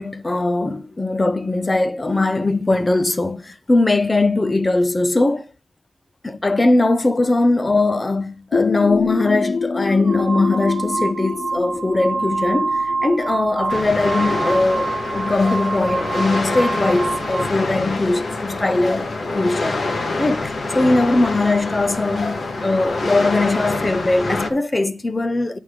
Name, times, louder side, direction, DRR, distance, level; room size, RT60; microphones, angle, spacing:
voice 1, 0.0-5.4 6.2-19.1 19.3-19.8 20.2-25.6, left 2 dB, 25° left, 0.6 m, -20 dB
sound 1, 8.5-14.1, left 4 dB, 80° left, 0.5 m, -26 dB
sound 2, 8.9-9.1 9.9-17.6, right 3 dB, 55° right, 0.9 m, -26 dB
sound 3, 13.7-24.5, left 3 dB, 50° left, 1.3 m, -26 dB
9.4 x 3.6 x 6.6 m
wide cardioid pair, 120°, 0 cm